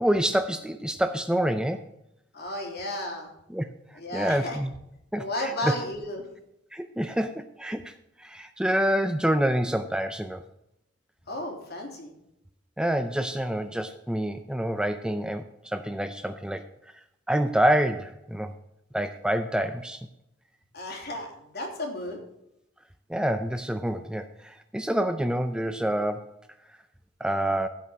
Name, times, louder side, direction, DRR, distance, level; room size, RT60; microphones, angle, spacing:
voice 1, 0.0-1.9 3.5-3.7 4.1-4.7 5.1-5.7 6.7-7.9 8.2-10.4 12.8-16.6 17.3-18.5 18.9-20.1 23.1-26.3 27.2-27.7, right 1 dB, 5° right, 9 dB, 0.5 m, -27 dB
voice 2, 2.3-3.3 3.9-4.6 5.2-6.3 11.3-12.1 20.7-22.2, left 1 dB, 60° left, 1 dB, 3.3 m, -33 dB
15.0 x 5.9 x 6.3 m, 0.81 s
head